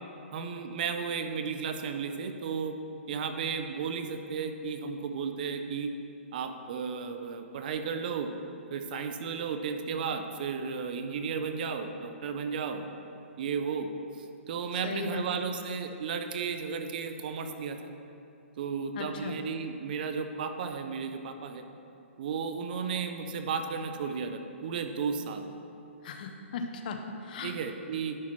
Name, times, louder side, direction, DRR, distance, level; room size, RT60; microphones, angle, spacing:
voice 1, 0.3-2.8 3.1-5.9 6.3-8.3 8.7-12.9 13.4-13.9 14.2-17.8 18.6-21.6 22.2-25.4 27.4-28.2, right 6 dB, 40° right, 7 dB, 0.5 m, -34 dB
voice 2, 14.8-15.4 19.0-19.4 26.0-27.5, left 4 dB, 40° left, 5 dB, 0.6 m, -37 dB
10.5 x 5.7 x 3.1 m, 2.7 s
hypercardioid pair, 160°, 7 cm